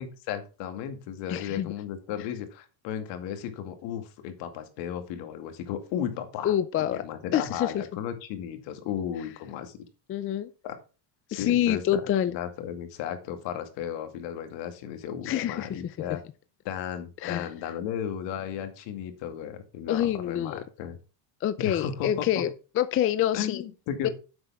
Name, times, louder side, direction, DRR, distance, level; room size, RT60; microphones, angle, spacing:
voice 1, 0.0-6.5 6.9-9.8 10.6-10.8 11.3-12.0 12.3-16.2 16.6-21.0 21.6-22.4 23.3-24.1, left 9 dB, 70° left, 7 dB, 2.3 m, -35 dB
voice 2, 1.3-1.7 6.4-7.0 7.3-7.8 10.1-10.5 11.3-12.4 15.2-15.8 17.2-17.5 19.9-20.6 21.4-22.5 22.8-23.6 24.0-24.1, left 11 dB, 30° left, 13 dB, 0.5 m, -26 dB
10.0 x 7.8 x 3.6 m, 0.33 s
cardioid pair, 155°, 45 cm